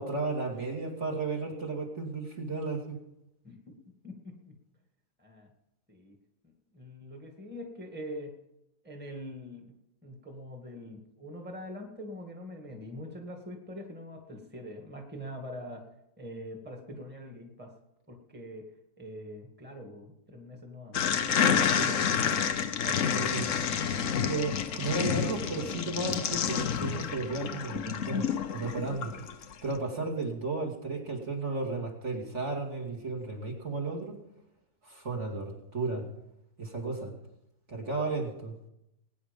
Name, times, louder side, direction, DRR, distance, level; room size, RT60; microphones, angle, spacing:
voice 1, 0.0-3.0 21.7-21.9 23.1-23.5 24.2-29.1 29.6-34.2 34.8-36.1 36.6-37.1 37.7-38.5, right 3 dB, 40° right, -1 dB, 2.8 m, -34 dB
voice 2, 4.0-4.6 5.2-5.5 5.9-6.2 6.7-8.4 8.8-9.7 10.0-15.8 16.2-17.7 18.1-18.7 19.0-22.3 22.6-23.5 28.6-28.8, equal, 5° right, 2 dB, 1.9 m, -43 dB
sound 1, 20.9-29.5, left 7 dB, 55° left, 1.1 m, -29 dB
21.5 x 9.8 x 5.3 m, 0.85 s
omnidirectional pair, 1.9 m